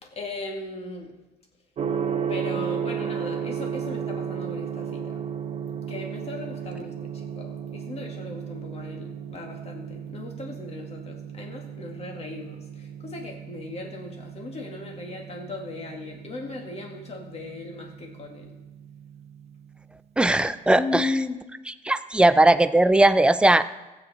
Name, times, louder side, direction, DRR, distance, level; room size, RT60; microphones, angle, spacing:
voice 1, 0.0-1.1 2.3-5.2 5.9-18.6 20.8-21.4, left 3 dB, 40° left, 2 dB, 2.1 m, -37 dB
Gong, 1.8-19.6, right 7 dB, 40° right, 0.8 m, -34 dB
voice 2, 20.2-21.1 21.8-23.6, right 2 dB, 5° right, 12 dB, 0.4 m, -18 dB
15.5 x 8.2 x 4.2 m, 1.1 s
cardioid pair, 110°, 17 cm